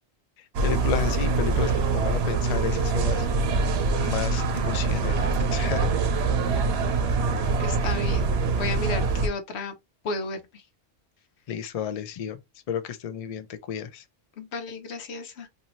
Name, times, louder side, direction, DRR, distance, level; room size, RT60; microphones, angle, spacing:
sound 1, 0.5-9.3, right 3 dB, 75° right, 0.9 m, -24 dB
voice 1, 0.6-3.2 4.0-5.9 11.5-12.4 12.7-14.0, left 8 dB, 50° left, 0.4 m, -32 dB
voice 2, 7.6-9.7 10.0-10.4 14.4-15.5, left 3 dB, 80° left, 1.0 m, -33 dB
2.6 x 2.6 x 2.9 m
omnidirectional pair, 1.1 m